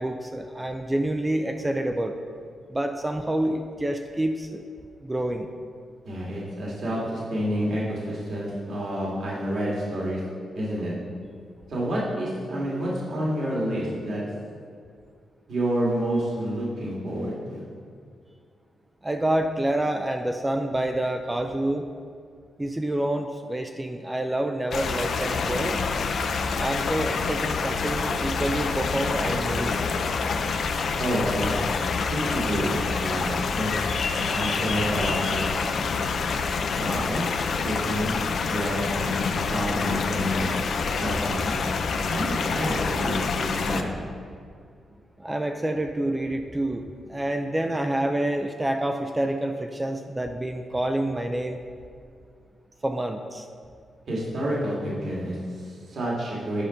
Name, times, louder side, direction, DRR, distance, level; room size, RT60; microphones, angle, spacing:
voice 1, 0.0-2.2 2.7-4.7 5.0-5.5 19.0-21.9 22.6-25.8 26.6-29.9 45.2-51.6 52.8-53.5, right 1 dB, 15° right, 5 dB, 0.4 m, -27 dB
voice 2, 6.0-10.2 10.5-10.9 11.7-14.2 15.5-17.6 31.0-31.5 32.1-33.8 34.2-35.5 36.8-37.2 37.6-38.2 38.5-40.5 41.0-41.5 42.1-43.9 54.1-56.6, equal, 60° right, -5 dB, 2.3 m, -29 dB
sound 1, 24.7-43.8, left 5 dB, 60° left, 0.6 m, -27 dB
9.9 x 5.2 x 5.7 m, 2.2 s
wide cardioid pair, 130°, 0 cm